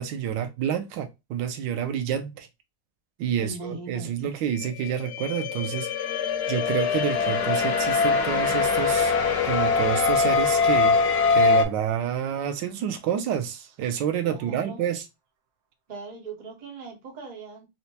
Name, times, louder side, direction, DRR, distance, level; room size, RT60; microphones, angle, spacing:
voice 1, 0.0-2.5 3.2-5.9 6.5-9.1 9.4-11.0 11.3-15.0, right 9 dB, 90° right, 1.3 m, -28 dB
voice 2, 3.4-4.3 14.2-14.8 15.9-17.7, right 3 dB, 30° right, 1.0 m, -40 dB
sound 1, 4.5-11.6, left 5 dB, 70° left, 1.0 m, -23 dB
sound 2, 6.6-12.6, right 5 dB, 65° right, 1.0 m, -40 dB
4.2 x 2.1 x 2.7 m
omnidirectional pair, 1.9 m